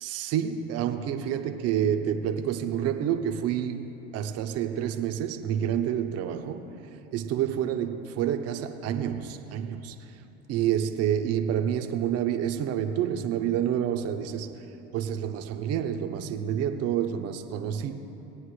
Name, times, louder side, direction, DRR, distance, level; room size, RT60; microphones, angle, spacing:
voice 1, 0.0-3.8 4.1-6.7 7.1-10.1 10.5-14.7 14.9-17.9, right 9 dB, 55° right, 7 dB, 0.9 m, -28 dB
19.5 x 8.9 x 3.3 m, 3.0 s
supercardioid pair, 95°, 30 cm